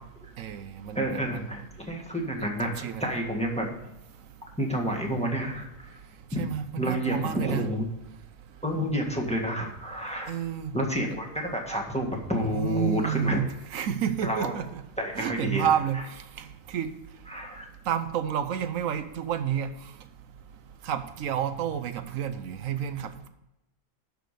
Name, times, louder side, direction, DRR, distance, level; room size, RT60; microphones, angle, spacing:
voice 1, 0.4-1.5 2.6-3.1 6.4-7.7 10.3-10.7 12.5-14.8 15.1-16.0 16.7-16.9 17.9-19.7 20.9-23.3, right 9 dB, 80° right, 10 dB, 1.1 m, -30 dB
voice 2, 0.9-3.8 4.6-6.0 6.3-6.4 6.8-7.8 8.6-10.3 10.7-13.4 14.2-14.5 15.0-15.7 17.3-17.7, equal, 5° left, 0 dB, 1.6 m, -29 dB
11.5 x 4.7 x 6.6 m, 0.90 s
omnidirectional pair, 1.4 m